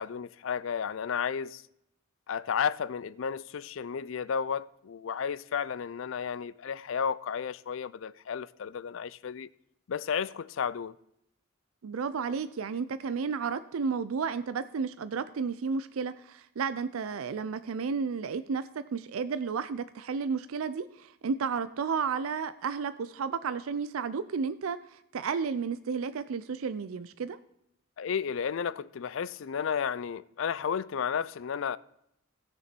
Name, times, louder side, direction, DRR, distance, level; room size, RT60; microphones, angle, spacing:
voice 1, 0.0-1.6 2.3-9.5 9.9-10.9 28.0-31.8, left 7 dB, 65° left, 0.4 m, -32 dB
voice 2, 11.8-27.4, right 5 dB, 80° right, 0.4 m, -32 dB
16.5 x 6.9 x 4.4 m
head